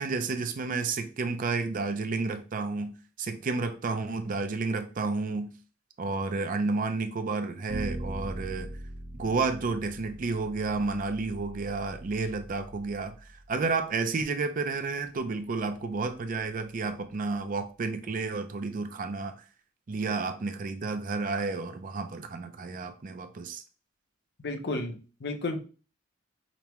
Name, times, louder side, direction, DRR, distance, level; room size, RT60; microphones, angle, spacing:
voice 1, 0.0-5.5 6.0-8.8 9.1-13.1 13.5-19.3 19.9-23.6, right 3 dB, 45° right, 0.4 m, -31 dB
Bowed string instrument, 7.7-13.9, right 1 dB, 85° right, 0.9 m, -41 dB
voice 2, 24.4-25.6, left 2 dB, 55° left, 0.6 m, -33 dB
5.2 x 2.1 x 2.9 m
head